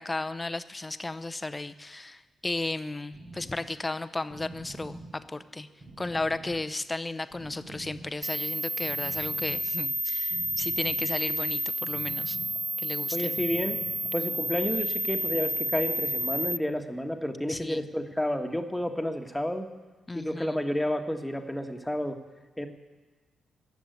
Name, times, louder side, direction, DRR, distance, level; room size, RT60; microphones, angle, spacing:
voice 1, 0.0-5.7 6.0-12.4 12.8-13.3 17.5-17.8 20.1-20.6, left 2 dB, 25° left, 13 dB, 0.8 m, -34 dB
sound 1, 3.1-14.5, right 2 dB, 50° right, 2.4 m, -47 dB
sound 2, 8.2-16.6, right 1 dB, 15° right, 0.4 m, -30 dB
voice 2, 13.1-13.8 14.1-19.7 20.1-22.2 22.6-22.7, equal, 5° left, 5 dB, 1.5 m, -30 dB
13.0 x 7.4 x 9.3 m, 1.3 s
hypercardioid pair, 40°, 0 cm